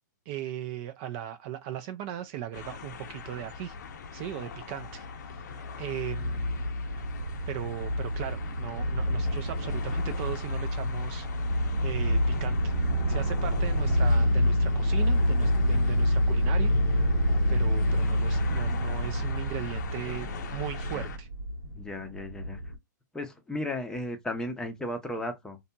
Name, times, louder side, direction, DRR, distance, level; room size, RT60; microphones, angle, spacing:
voice 1, 0.3-3.7 4.1-5.0 5.8-6.7 7.5-11.3 11.8-12.7 13.1-16.7 17.5-21.3, right 11 dB, 40° right, 0.4 m, -38 dB
sound 1, 2.5-21.2, left 4 dB, 65° left, 0.6 m, -37 dB
sound 2, 6.2-22.8, equal, 85° right, 1.0 m, -27 dB
voice 2, 21.7-22.6 23.1-25.6, left 1 dB, 5° left, 0.6 m, -35 dB
2.7 x 2.6 x 2.2 m
hypercardioid pair, 135°, 10 cm